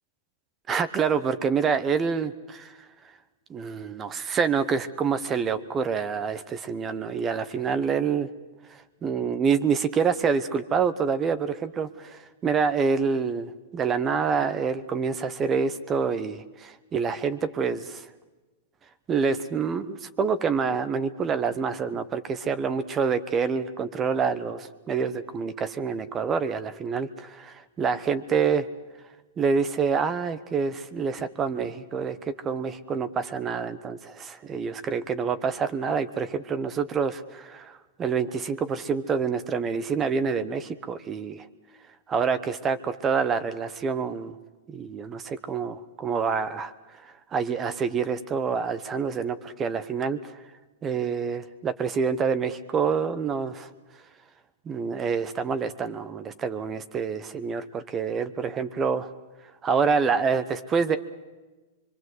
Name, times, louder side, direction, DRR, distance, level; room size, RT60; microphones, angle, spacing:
voice 1, 0.7-2.8 3.5-8.3 8.7-18.1 19.1-28.7 29.4-32.2 32.4-41.5 42.1-44.4 44.7-46.7 47.0-50.4 50.8-53.7 54.7-59.1 59.6-61.0, right 6 dB, 25° right, 12 dB, 1.0 m, -27 dB
24.5 x 23.5 x 8.1 m, 1.2 s
hypercardioid pair, 125°, 0 cm